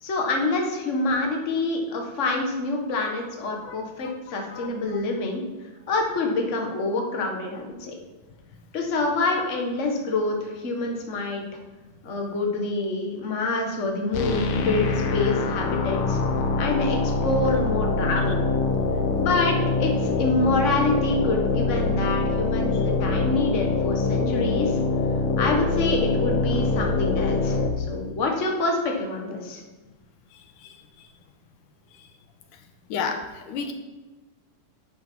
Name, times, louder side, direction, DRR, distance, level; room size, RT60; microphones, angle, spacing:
voice 1, 0.0-5.4 5.9-7.9 8.7-11.4 12.0-16.2 16.6-18.4 19.2-24.8 25.4-29.6, left 2 dB, 40° left, 1 dB, 1.1 m, -26 dB
voice 2, 3.7-3.8 4.5-4.7 32.9-33.2 33.5-33.7, left 6 dB, 90° left, 6 dB, 2.6 m, -29 dB
sound 1, 14.1-27.7, left 3 dB, 65° left, 2.2 m, -24 dB
11.5 x 8.6 x 4.6 m, 1.2 s
omnidirectional pair, 3.6 m